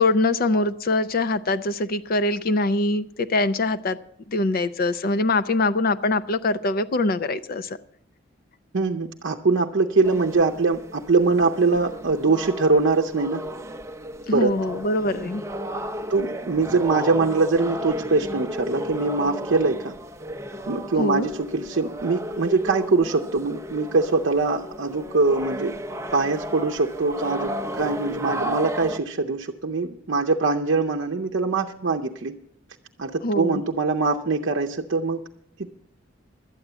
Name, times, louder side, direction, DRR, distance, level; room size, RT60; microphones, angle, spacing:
voice 1, 0.0-4.0 4.3-7.8 14.3-15.4 21.0-21.3 33.2-33.6, left 2 dB, 45° left, 13 dB, 0.5 m, -23 dB
voice 2, 8.7-13.4 14.3-14.5 16.1-19.9 20.7-25.7 26.1-32.3 33.0-35.2, right 3 dB, 60° right, 2 dB, 0.7 m, -23 dB
sound 1, 10.0-29.0, equal, 15° right, 0.5 m, -33 dB
12.5 x 8.7 x 8.0 m, 0.72 s
head